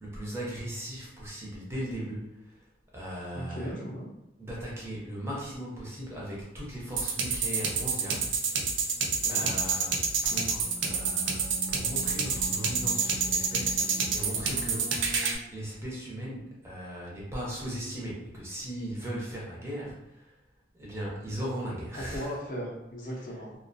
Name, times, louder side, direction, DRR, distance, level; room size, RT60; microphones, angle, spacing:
voice 1, 0.0-2.7 2.9-3.7 4.4-8.8 9.3-15.0 15.5-20.3 20.7-22.4 23.1-23.2, equal, 15° right, -5 dB, 0.5 m, -38 dB
voice 2, 3.3-4.0 9.2-9.5 22.0-23.5, equal, 45° left, -2 dB, 0.5 m, -37 dB
sound 1, 7.0-15.4, right 5 dB, 90° right, 0.4 m, -28 dB
2.3 x 2.1 x 2.5 m, 0.90 s
head